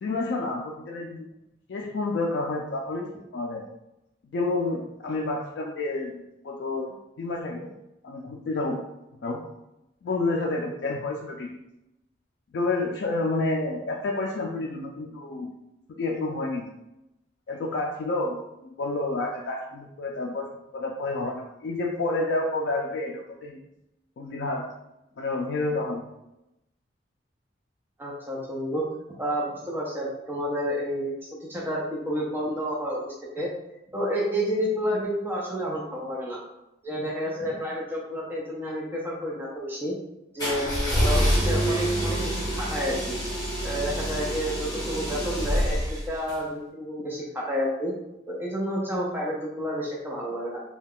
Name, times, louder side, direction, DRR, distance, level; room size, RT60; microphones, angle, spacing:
voice 1, 0.0-1.3 1.7-3.6 4.3-7.8 8.0-8.8 9.2-9.4 10.0-11.6 12.5-15.5 15.9-16.7 17.5-23.6 24.2-24.7 25.2-26.1, left 2 dB, 65° left, -1 dB, 0.3 m, -29 dB
voice 2, 28.0-28.8 29.2-33.5 33.9-36.4 36.8-39.9 40.3-43.2 43.6-45.8 46.1-47.9 48.3-50.6, equal, 10° right, -5 dB, 0.5 m, -30 dB
sound 1, 40.4-46.4, equal, 20° left, 1.1 m, -26 dB
2.3 x 2.2 x 3.5 m, 0.90 s
head